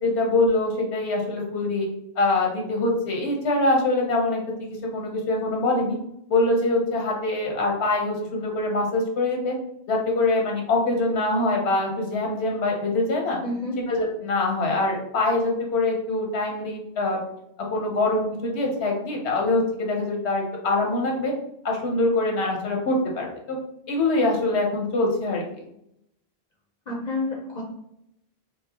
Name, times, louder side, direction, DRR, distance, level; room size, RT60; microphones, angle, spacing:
voice 1, 0.0-1.9 2.2-6.0 6.3-9.5 9.9-13.4 13.9-17.2 17.7-21.3 21.6-23.6 23.9-25.4, left 2 dB, 90° left, 0 dB, 1.0 m, -24 dB
voice 2, 13.4-13.7 26.9-27.6, left 2 dB, 50° left, -2 dB, 0.6 m, -29 dB
4.6 x 2.0 x 2.8 m, 0.78 s
omnidirectional pair, 1.1 m